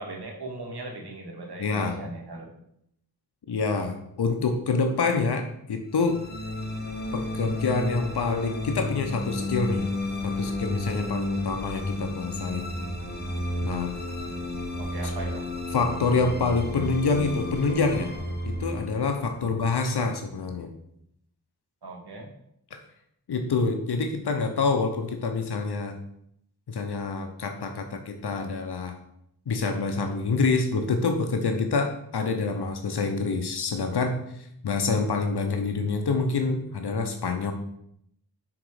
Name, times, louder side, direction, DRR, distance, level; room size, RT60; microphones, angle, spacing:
voice 1, 0.0-2.5 14.8-15.5 19.4-19.6 21.8-22.3, right 2 dB, 80° right, 1 dB, 1.5 m, -38 dB
voice 2, 1.6-2.0 3.5-6.2 7.1-9.9 10.2-12.6 13.6-13.9 15.7-18.1 18.4-20.7 22.7-22.8 23.3-26.0 26.7-29.0 29.5-37.5, left 4 dB, 80° left, 5 dB, 0.8 m, -27 dB
sound 1, 5.9-20.3, left 1 dB, 25° left, 1.1 m, -32 dB
6.0 x 3.9 x 4.8 m, 0.74 s
wide cardioid pair, 55°, 39 cm